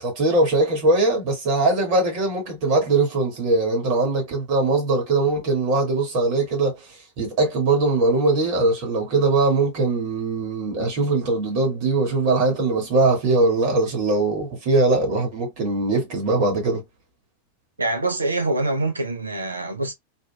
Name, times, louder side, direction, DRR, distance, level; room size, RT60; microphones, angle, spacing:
voice 1, 0.0-6.8 7.2-16.8, right 2 dB, 45° right, 2.1 m, -21 dB
voice 2, 17.8-19.9, right 2 dB, 80° right, 0.8 m, -25 dB
4.0 x 2.6 x 2.2 m
figure-of-eight pair, 90°, 0 cm